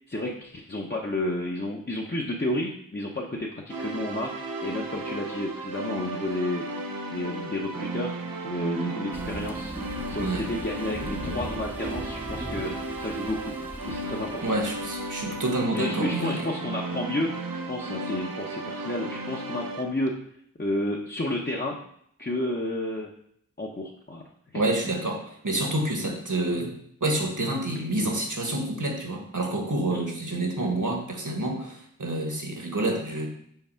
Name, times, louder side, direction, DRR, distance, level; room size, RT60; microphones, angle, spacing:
voice 1, 0.1-6.6 7.1-8.2 8.4-9.7 10.1-13.6 13.9-14.4 15.7-20.2 20.6-21.8 22.2-23.1 23.6-24.2 24.5-24.6 26.0-26.1 29.9-30.0, left 1 dB, 30° left, -2 dB, 0.8 m, -31 dB
sound 1, 3.7-19.8, right 2 dB, 85° right, 0.7 m, -34 dB
sound 2, 9.1-15.7, equal, 5° right, 0.7 m, -39 dB
voice 2, 14.4-16.4 24.5-33.3, right 1 dB, 65° right, 1 dB, 1.5 m, -28 dB
5.7 x 4.1 x 5.6 m, 0.68 s
wide cardioid pair, 50°, 33 cm